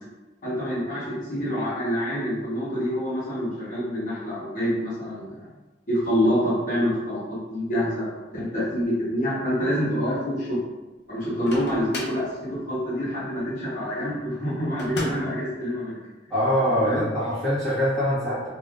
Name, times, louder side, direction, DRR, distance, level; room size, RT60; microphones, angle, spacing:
voice 1, 0.4-5.5 5.9-8.1 8.3-10.6 11.1-16.0 16.8-17.0, equal, 50° left, -10 dB, 1.2 m, -26 dB
Microwave oven, 11.2-12.3 14.8-15.4, left 1 dB, 70° left, 0.6 m, -33 dB
voice 2, 16.3-18.5, equal, 5° left, -13 dB, 1.5 m, -23 dB
3.4 x 2.6 x 2.5 m, 1.1 s
head